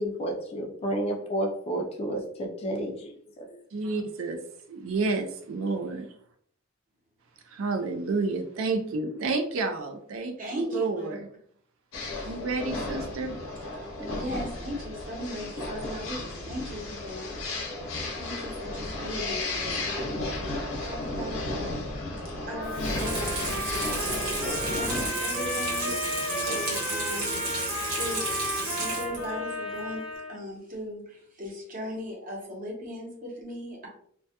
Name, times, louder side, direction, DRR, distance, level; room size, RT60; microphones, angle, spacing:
voice 1, 0.0-3.6, right 1 dB, 30° left, 2 dB, 0.3 m, -31 dB
voice 2, 3.7-4.4 4.7-6.1 7.4-11.3 12.2-13.4, right 3 dB, 70° right, 4 dB, 0.4 m, -30 dB
voice 3, 10.4-11.1 13.8-17.3 18.1-21.4 22.5-25.9 26.5-27.4 27.9-33.9, equal, 40° right, -1 dB, 0.7 m, -38 dB
sound 1, 11.9-25.1, left 2 dB, 85° left, 0.7 m, -34 dB
Trumpet, 22.5-30.4, left 1 dB, 5° right, 0.7 m, -34 dB
Water tap faucet / Sink (filling or washing), 22.6-29.4 29.7-29.8, right 2 dB, 90° right, 1.1 m, -32 dB
2.2 x 2.1 x 2.7 m, 0.62 s
head